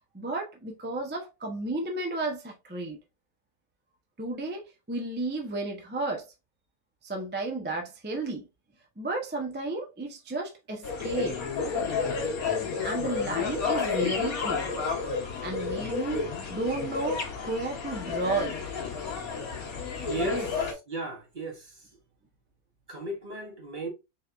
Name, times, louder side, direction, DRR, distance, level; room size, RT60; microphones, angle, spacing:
voice 1, 0.1-3.0 4.2-6.3 7.0-8.5 9.0-11.4 12.8-14.7 15.4-16.2 16.5-18.6 20.2-20.5, right 2 dB, 15° right, 0.4 m, -33 dB
sound 1, 10.8-20.7, left 5 dB, 70° left, 1.4 m, -31 dB
voice 2, 20.1-21.8 22.9-23.9, right 2 dB, 40° right, 1.0 m, -35 dB
4.6 x 3.4 x 2.4 m
omnidirectional pair, 1.6 m